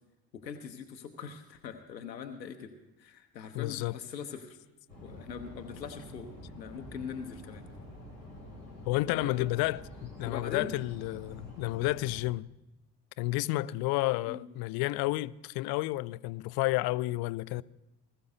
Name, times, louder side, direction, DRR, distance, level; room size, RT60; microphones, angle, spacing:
voice 1, 0.3-2.7 3.0-4.6 5.0-7.6 9.1-9.5 10.2-10.7 14.2-14.5, left 6 dB, 85° left, 0.7 m, -42 dB
voice 2, 3.5-4.0 8.8-12.5 13.2-17.6, left 19 dB, 50° left, 0.5 m, -31 dB
sound 1, 4.9-12.2, left 1 dB, 90° right, 3.4 m, -48 dB
20.0 x 13.0 x 2.6 m
figure-of-eight pair, 45°, 50 cm